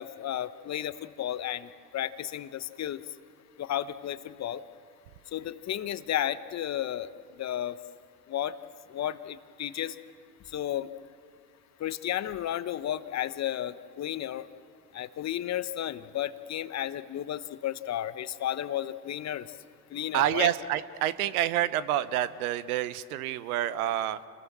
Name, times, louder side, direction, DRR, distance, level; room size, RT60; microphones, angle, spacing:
voice 1, 0.0-3.0 3.6-4.6 5.3-7.1 7.4-7.8 8.3-8.5 8.9-9.9 10.5-10.9 11.8-14.5 14.9-19.5 19.9-20.5, left 11 dB, 35° left, 13 dB, 1.1 m, -33 dB
voice 2, 20.1-24.2, right 12 dB, 65° right, 15 dB, 1.2 m, -28 dB
29.5 x 21.0 x 7.4 m, 2.2 s
hypercardioid pair, 75°, 47 cm